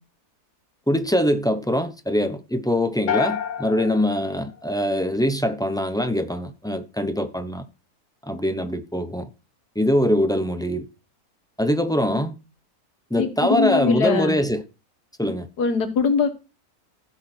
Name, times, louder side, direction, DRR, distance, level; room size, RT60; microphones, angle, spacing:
voice 1, 0.9-7.6 8.2-9.3 9.7-10.9 11.6-12.3 13.1-14.6 15.2-15.5, equal, 5° left, 0.5 m, -23 dB
sound 1, 3.1-5.3, left 9 dB, 55° left, 1.0 m, -30 dB
voice 2, 13.1-14.4 15.6-16.3, left 5 dB, 90° left, 1.9 m, -22 dB
15.5 x 6.1 x 4.5 m
omnidirectional pair, 1.7 m